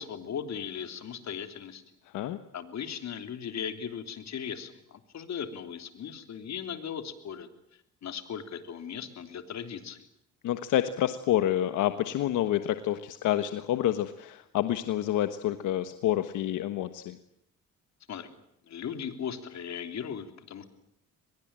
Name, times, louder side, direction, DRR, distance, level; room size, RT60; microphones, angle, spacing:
voice 1, 0.0-1.8 2.5-7.5 8.0-10.0 18.1-18.3 18.7-20.6, left 7 dB, 65° left, 8 dB, 3.4 m, -38 dB
voice 2, 10.4-17.2, left 12 dB, 85° left, 10 dB, 1.4 m, -28 dB
23.5 x 21.5 x 8.9 m, 0.78 s
cardioid pair, 90°, 30 cm